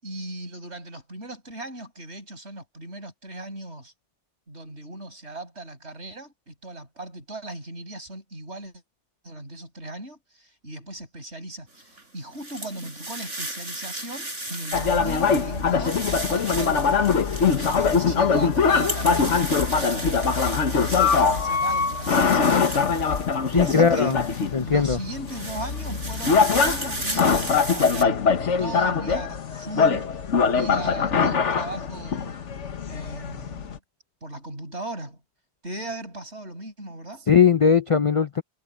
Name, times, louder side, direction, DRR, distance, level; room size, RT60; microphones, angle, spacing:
voice 1, 0.0-3.9 4.5-8.7 9.2-17.4 17.7-22.7 23.5-24.2 24.6-28.2 28.6-30.1 30.4-32.4 32.9-33.8 34.2-35.2 35.6-37.3, right 1 dB, 65° right, 7.2 m, -37 dB
sound 1, 11.8-24.6 25.1-28.0, right 2 dB, 85° right, 6.4 m, -35 dB
sound 2, 14.7-33.8, left 5 dB, 80° left, 1.6 m, -23 dB
voice 2, 23.5-24.2 24.5-25.0 37.3-38.4, left 6 dB, 40° left, 0.5 m, -19 dB
omnidirectional pair, 1.2 m